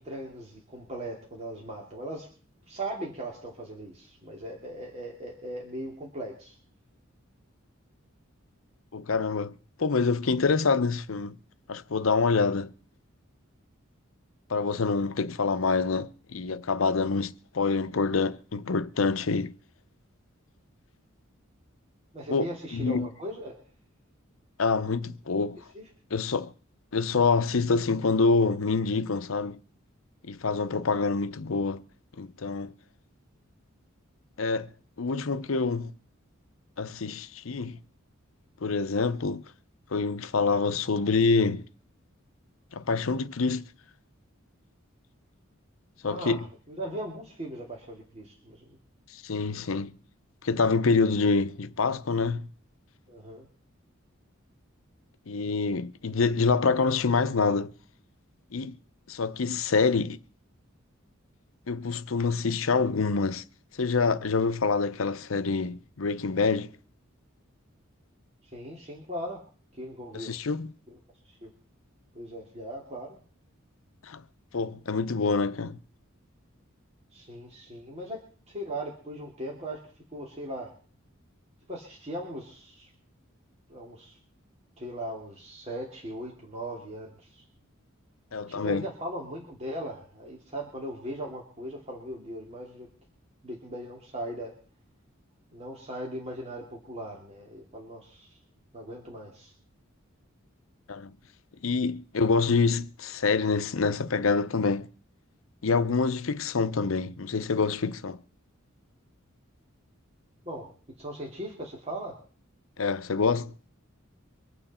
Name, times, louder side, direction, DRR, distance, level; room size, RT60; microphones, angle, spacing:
voice 1, 0.0-2.3 2.7-6.5 22.1-23.6 25.7-25.8 30.8-31.0 46.0-46.4 46.7-48.8 53.1-53.5 68.5-69.4 69.7-70.4 70.9-71.0 71.4-71.5 72.1-73.2 77.1-80.7 81.7-82.9 83.7-84.2 84.8-87.4 88.5-92.9 93.4-94.5 95.5-98.4 98.7-99.5 110.4-110.7 111.0-112.2, right 1 dB, 30° right, 2.8 m, -39 dB
voice 2, 8.9-9.5 9.8-11.3 11.7-12.7 14.5-19.5 22.3-23.1 24.6-25.6 26.1-26.5 26.9-29.6 30.3-31.8 32.2-32.7 34.4-34.7 35.0-35.9 36.8-37.8 38.6-39.4 39.9-41.6 42.7-43.7 46.0-46.4 49.1-49.9 50.4-52.5 55.3-57.7 58.5-58.8 59.1-60.2 61.7-63.4 63.8-66.7 70.1-70.7 74.1-74.2 74.5-75.8 88.3-88.8 100.9-101.1 101.6-104.9 105.6-108.2 112.8-113.5, left 4 dB, 75° left, 0.7 m, -26 dB
24.5 x 9.1 x 4.3 m
head